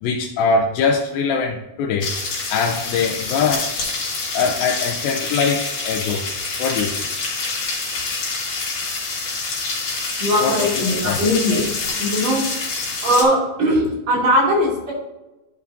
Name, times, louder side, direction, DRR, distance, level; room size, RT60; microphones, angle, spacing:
voice 1, 0.0-2.1 2.5-3.7 4.3-6.3 6.6-7.0 10.4-11.2, left 5 dB, 85° left, 1 dB, 2.5 m, -22 dB
sound 1, 2.0-13.2, left 3 dB, 60° left, 3.3 m, -26 dB
voice 2, 10.2-11.6 12.0-12.4 13.0-14.9, equal, 50° right, -5 dB, 3.4 m, -19 dB
11.5 x 5.4 x 2.6 m, 1.0 s
omnidirectional pair, 4.0 m